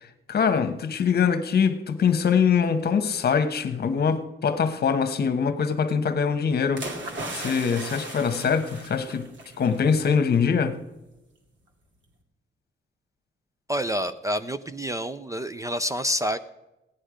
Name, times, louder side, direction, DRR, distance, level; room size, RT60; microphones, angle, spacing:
voice 1, 0.0-6.8 7.3-9.3 9.6-10.8, left 6 dB, 50° left, 1.1 m, -23 dB
sound 1, 6.8-9.8 10.1-10.3, right 2 dB, 65° right, 2.2 m, -37 dB
voice 2, 13.7-16.4, equal, 15° right, 0.4 m, -28 dB
16.5 x 10.0 x 5.0 m
wide cardioid pair, 160°, 21 cm